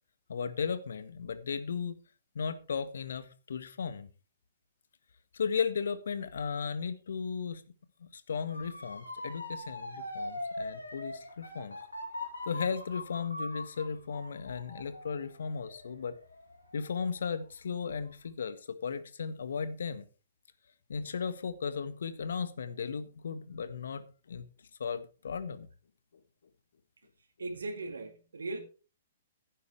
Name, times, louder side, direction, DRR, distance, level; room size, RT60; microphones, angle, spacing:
voice 1, 0.3-2.0 2.3-4.1 5.3-7.6 8.0-11.8 12.4-16.2 16.7-20.0 20.9-24.5 24.8-25.7, left 6 dB, 70° left, 1.6 m, -35 dB
Motor vehicle (road) / Siren, 8.5-17.4 17.8-18.3, left 1 dB, 85° left, 5.2 m, -42 dB
voice 2, 27.4-28.6, right 2 dB, 75° right, 2.4 m, -38 dB
15.5 x 11.0 x 3.5 m
figure-of-eight pair, 120°, 0 cm